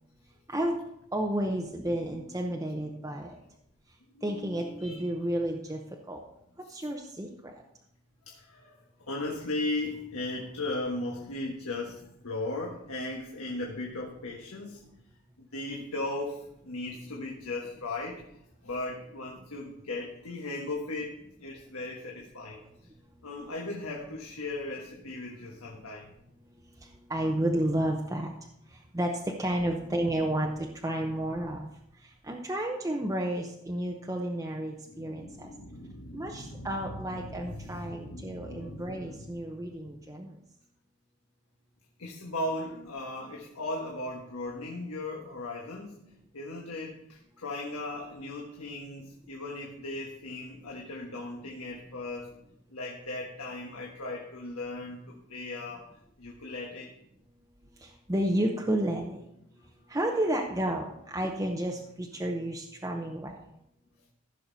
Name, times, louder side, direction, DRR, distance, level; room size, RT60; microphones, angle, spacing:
voice 1, 1.1-3.4 4.2-5.8 6.1-6.2 6.6-7.5 26.8-28.3 28.7-31.7 32.0-35.5 36.1-40.4 57.8-59.4 59.9-63.4, right 1 dB, 15° right, 0 dB, 0.7 m, -31 dB
voice 2, 4.1-5.1 6.6-6.8 8.2-14.8 15.4-18.2 18.6-22.6 23.2-26.1 34.9-39.4 42.0-45.9 46.3-52.3 52.7-55.9 56.2-56.9 62.9-63.1, left 2 dB, 80° left, -1 dB, 1.4 m, -37 dB
15.0 x 6.5 x 4.0 m, 0.79 s
head